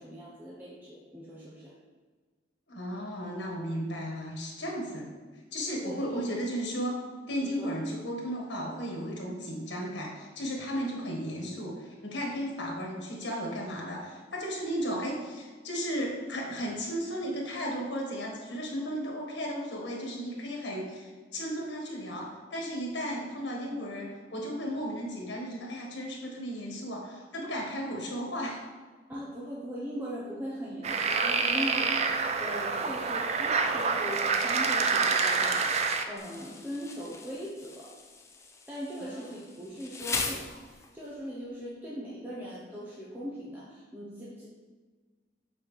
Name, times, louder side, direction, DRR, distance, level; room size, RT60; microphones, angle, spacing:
voice 1, 0.0-1.7 5.8-6.1 7.4-7.7 29.1-35.8 36.1-37.9 38.7-44.5, equal, 10° right, -7 dB, 0.8 m, -40 dB
voice 2, 2.7-5.1 5.5-7.0 7.3-28.6 39.0-39.2 40.3-40.4, equal, 90° left, -1 dB, 1.6 m, -35 dB
sound 1, 30.8-36.0, right 4 dB, 40° right, 0.4 m, -27 dB
Insect, 36.2-41.1, left 3 dB, 15° left, 0.5 m, -39 dB
7.5 x 4.0 x 3.3 m, 1.4 s
head